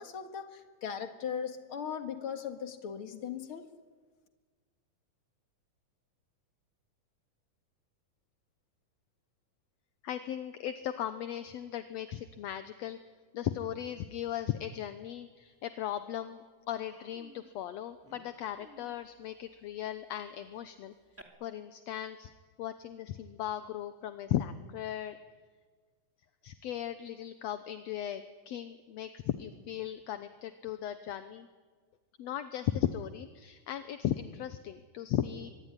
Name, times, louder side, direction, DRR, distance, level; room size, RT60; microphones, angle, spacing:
voice 1, 0.0-3.7, left 7 dB, 45° left, 7 dB, 2.3 m, -38 dB
voice 2, 10.0-13.0 13.3-20.9 21.4-22.3 22.6-25.2 26.4-31.5 32.2-35.5, left 11 dB, 70° left, 10 dB, 1.8 m, -37 dB
Human voice, 15.7-15.8 16.1-16.3 16.7-21.2, right 1 dB, 5° right, 2.1 m, -59 dB
24.5 x 22.5 x 9.9 m, 1.5 s
omnidirectional pair, 3.7 m